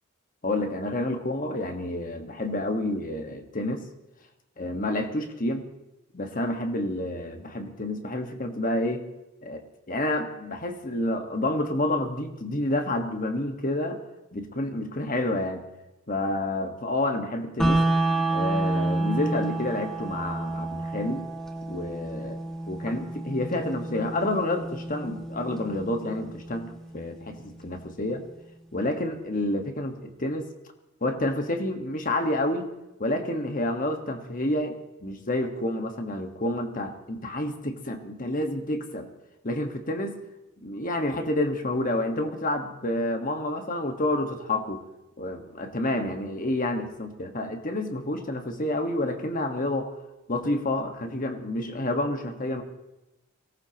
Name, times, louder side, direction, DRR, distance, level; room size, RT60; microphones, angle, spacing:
voice 1, 0.4-3.8 4.6-5.7 6.1-9.1 9.4-14.0 14.3-15.6 16.1-17.8 18.3-21.3 21.7-22.4 22.7-28.2 28.7-30.5 31.0-32.7 33.0-39.1 39.4-40.2 40.6-44.8 45.2-49.9 50.3-52.6, left 1 dB, 40° left, 5 dB, 1.4 m, -29 dB
sound 1, 17.6-27.6, right 2 dB, 5° left, 1.5 m, -29 dB
23.0 x 18.0 x 2.9 m, 0.98 s
head